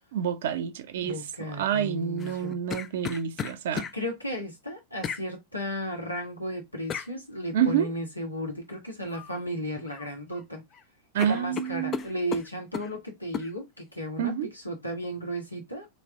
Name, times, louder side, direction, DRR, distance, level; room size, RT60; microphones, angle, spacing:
voice 1, 0.1-1.2 1.6-3.8 7.5-7.9 11.1-12.0 14.2-14.5, right 9 dB, 55° right, 0.5 m, -28 dB
voice 2, 1.0-2.6 3.7-10.6 11.2-15.9, equal, 85° left, 1.3 m, -35 dB
sound 1, 2.2-3.9 5.0-5.2 6.9-7.1 9.1-9.4 9.7-10.4 10.7-10.8 11.2-12.9 13.3-13.5, left 8 dB, 25° left, 0.4 m, -35 dB
3.2 x 3.1 x 3.6 m
figure-of-eight pair, 90°, 0 cm